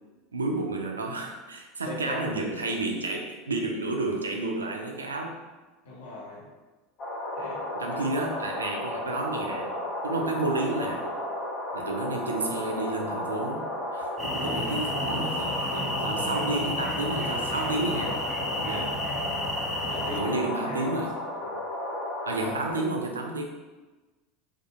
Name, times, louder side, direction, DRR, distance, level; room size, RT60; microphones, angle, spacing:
voice 1, 0.3-5.4 7.7-9.7 10.0-11.1 11.7-18.2 18.6-19.0 19.9-21.2 22.3-23.4, right 2 dB, 80° right, 2 dB, 0.3 m, -31 dB
voice 2, 1.8-2.4 5.8-6.5 7.4-7.6 18.4-18.7 19.9-21.0 21.4-21.6, left 2 dB, 75° left, -5 dB, 0.6 m, -39 dB
sound 1, 7.0-22.7, left 1 dB, 40° left, 0.8 m, -33 dB
sound 2, 14.2-20.2, left 1 dB, 5° left, 0.6 m, -32 dB
2.6 x 2.3 x 2.3 m, 1.2 s
figure-of-eight pair, 75°, 0 cm